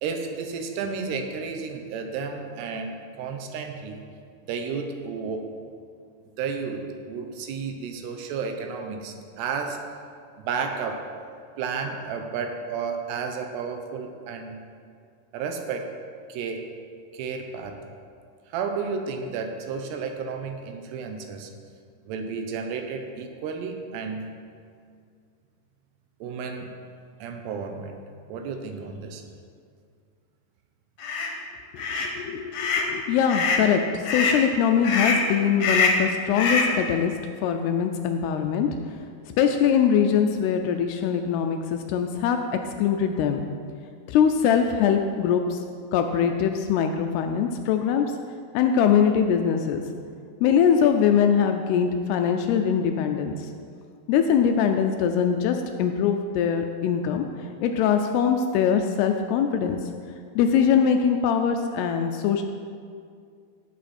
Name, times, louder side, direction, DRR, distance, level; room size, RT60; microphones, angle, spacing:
voice 1, 0.0-4.0 4.4-5.5 6.4-9.8 10.4-11.1 11.6-14.6 15.3-15.9 16.3-16.9 17.1-17.9 18.5-21.5 22.1-24.3 26.2-26.7 27.2-28.0 28.3-29.2, right 5 dB, 75° right, 5 dB, 2.9 m, -32 dB
sound 1, 31.0-31.3 31.8-32.1 32.5-32.9 33.3-33.7 34.0-34.4 34.8-35.3 35.6-36.1 36.3-36.8, left 4 dB, 60° left, 2.4 m, -24 dB
voice 2, 31.7-37.1 37.4-38.7 39.4-42.4 42.8-43.5 44.1-45.6 45.9-48.1 48.5-49.8 50.4-53.5 54.1-57.2 57.6-59.8 60.4-62.4, left 7 dB, 80° left, 5 dB, 2.4 m, -22 dB
16.5 x 7.9 x 4.3 m, 2.2 s
omnidirectional pair, 5.0 m